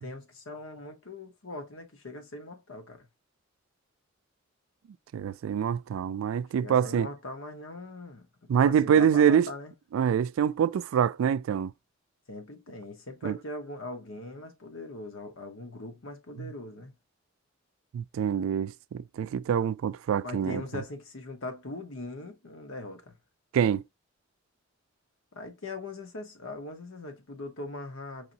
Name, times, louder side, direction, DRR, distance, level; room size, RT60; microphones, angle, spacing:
voice 1, 0.0-3.1 6.6-8.3 8.6-9.7 12.3-16.9 20.2-23.1 25.3-28.3, left 2 dB, 90° left, 1.0 m, -41 dB
voice 2, 5.1-7.1 8.5-9.5 9.9-11.7 13.2-13.4 16.4-16.5 17.9-20.6 23.5-23.8, right 8 dB, 80° right, 0.3 m, -25 dB
4.7 x 2.6 x 2.8 m
head